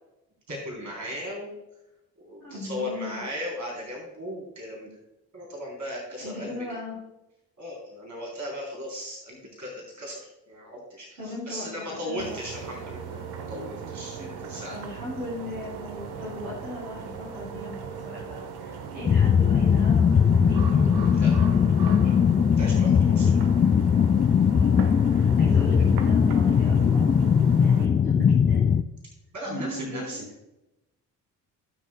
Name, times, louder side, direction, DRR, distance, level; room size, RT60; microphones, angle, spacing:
voice 1, 0.5-1.5 2.2-4.9 5.3-6.5 7.6-10.2 10.5-13.2 13.5-14.8 21.1-21.3 22.6-23.3 29.3-30.2, left 1 dB, 40° right, -2 dB, 3.7 m, -36 dB
voice 2, 2.4-3.2 6.2-6.9 11.2-12.4 14.2-14.3 14.7-22.1 24.4-27.1 27.5-28.7 29.4-30.1, left 2 dB, 85° right, -7 dB, 3.3 m, -37 dB
sound 1, 12.2-27.9, right 6 dB, 55° right, 1.1 m, -39 dB
sound 2, 19.1-28.8, left 7 dB, 20° left, 0.3 m, -20 dB
19.0 x 6.3 x 2.3 m, 0.90 s
figure-of-eight pair, 40°, 46 cm